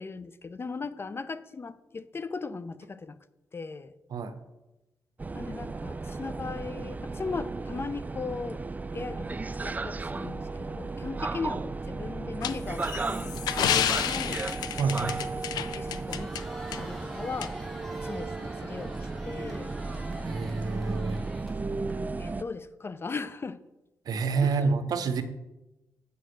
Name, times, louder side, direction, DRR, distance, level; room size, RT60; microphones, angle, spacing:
voice 1, 0.0-3.2 3.5-3.9 5.3-8.6 8.9-14.4 15.0-15.2 15.7-16.3 16.8-17.6 18.0-19.7 21.5-21.6 22.2-23.6 24.4-24.7, left 4 dB, 35° left, 15 dB, 0.5 m, -38 dB
sound 1, 5.2-22.4, right 3 dB, 25° right, 0.3 m, -35 dB
sound 2, 12.4-16.4 16.7-16.8 17.4-17.5, left 10 dB, 90° left, 0.4 m, -30 dB
voice 2, 14.8-15.2 20.2-21.2 24.1-25.2, right 4 dB, 70° right, 10 dB, 0.8 m, -28 dB
Crowd, 15.9-21.9, equal, 5° left, 1.6 m, -46 dB
6.9 x 5.2 x 6.5 m, 0.99 s
cardioid pair, 60°, 7 cm